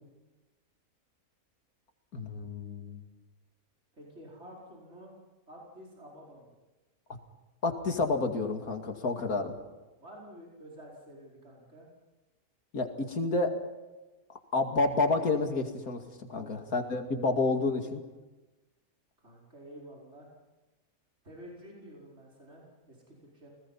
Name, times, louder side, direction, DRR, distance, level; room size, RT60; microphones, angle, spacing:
voice 1, 2.1-3.0 7.6-9.5 12.7-13.6 14.5-18.0, left 3 dB, 90° left, 4 dB, 2.8 m, -29 dB
voice 2, 3.9-5.1 5.5-6.5 10.0-11.9 16.3-17.1 19.2-20.4 21.2-23.5, equal, 50° right, -4 dB, 5.4 m, -50 dB
29.5 x 20.0 x 5.8 m, 1.1 s
omnidirectional pair, 1.5 m